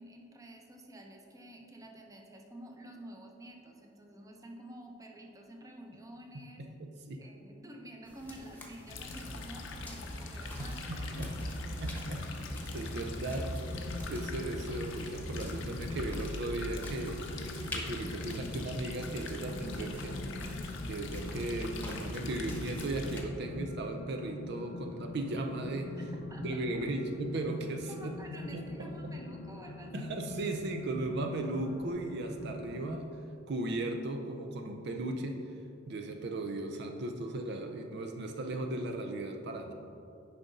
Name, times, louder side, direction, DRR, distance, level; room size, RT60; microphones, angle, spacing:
voice 1, 0.0-6.6 7.2-11.2 26.0-26.1 26.3-26.9 27.9-30.1, right 1 dB, 20° right, 1 dB, 0.8 m, -50 dB
voice 2, 6.3-7.2 10.6-11.4 11.8-12.3 12.7-13.5 14.1-17.3 17.5-20.2 20.9-25.9 26.4-28.2 28.5-29.1 29.9-33.2 33.5-35.4 35.9-39.7, right 2 dB, 60° right, 4 dB, 0.5 m, -37 dB
sound 1, 8.0-23.2, left 1 dB, 10° left, 1.0 m, -49 dB
sound 2, 8.9-23.2, left 2 dB, 75° left, 0.8 m, -40 dB
sound 3, 13.6-33.0, left 2 dB, 55° left, 0.4 m, -44 dB
9.6 x 5.1 x 4.0 m, 2.7 s
head